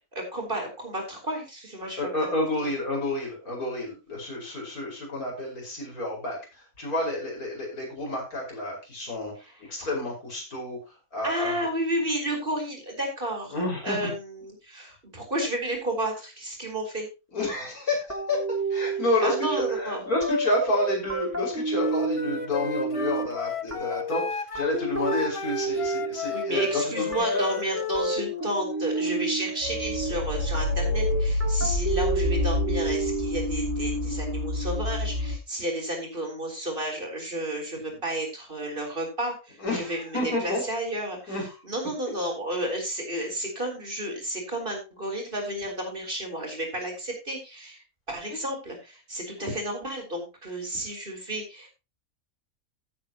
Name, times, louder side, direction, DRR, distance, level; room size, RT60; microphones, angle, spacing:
voice 1, 0.1-2.3 11.2-17.1 19.2-20.0 26.3-41.3 41.7-51.7, right 1 dB, 35° right, 1 dB, 4.2 m, -32 dB
voice 2, 2.0-11.7 13.5-14.1 17.3-18.4 18.7-27.5 28.4-28.8 33.9-34.3 37.9-38.0 39.6-40.6 41.3-41.6 49.4-49.5, left 1 dB, 90° left, -2 dB, 5.8 m, -30 dB
sound 1, 18.1-33.5, right 3 dB, 10° right, 1.5 m, -31 dB
Wind instrument woodwind instrument, 21.7-28.2, left 5 dB, 30° left, 0.6 m, -34 dB
sound 2, 29.6-35.4, left 1 dB, 55° right, 5.0 m, -27 dB
16.0 x 8.5 x 3.0 m, 0.28 s
omnidirectional pair, 1.5 m